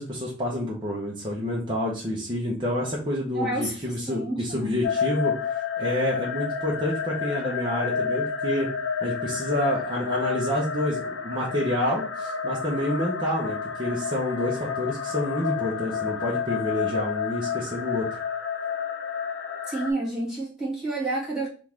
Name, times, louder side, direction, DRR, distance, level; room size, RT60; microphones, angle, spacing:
voice 1, 0.0-8.7 9.0-18.1, left 1 dB, 25° right, -5 dB, 0.8 m, -28 dB
voice 2, 3.3-4.8 19.7-21.5, right 2 dB, 5° right, -8 dB, 1.8 m, -30 dB
sound 1, 4.8-19.9, left 6 dB, 75° left, 0.7 m, -30 dB
3.8 x 2.5 x 4.5 m, 0.40 s
head